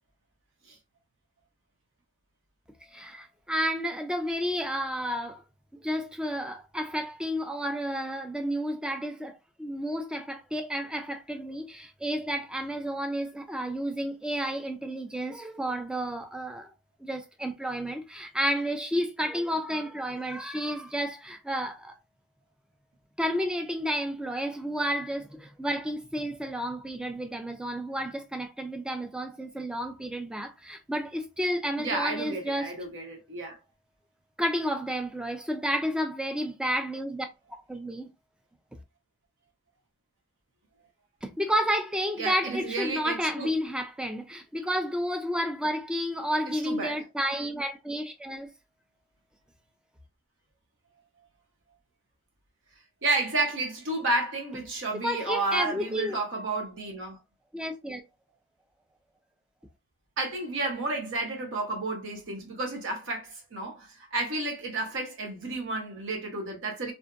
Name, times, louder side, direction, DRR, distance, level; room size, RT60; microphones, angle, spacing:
voice 1, 2.9-5.4 5.8-16.7 17.0-22.0 23.2-32.7 34.4-37.3 37.7-38.1 41.2-48.5 54.9-56.2 57.5-58.0, equal, 5° right, 0.3 m, -31 dB
voice 2, 31.8-33.6 42.2-43.5 46.5-47.0 53.0-57.2 60.2-66.9, right 2 dB, 60° right, 0.8 m, -31 dB
2.5 x 2.5 x 2.2 m
head